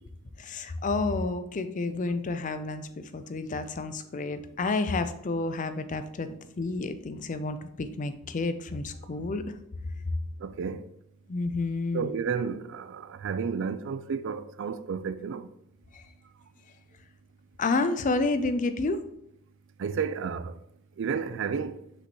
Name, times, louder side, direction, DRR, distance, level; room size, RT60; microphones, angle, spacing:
voice 1, 0.4-6.3 6.6-9.6 11.3-12.1 15.9-16.0 17.6-19.0, left 3 dB, 35° left, 0.4 m, -30 dB
voice 2, 11.9-15.4 19.8-20.5 21.0-21.7, right 6 dB, 60° right, 0.4 m, -31 dB
6.3 x 5.2 x 3.0 m
head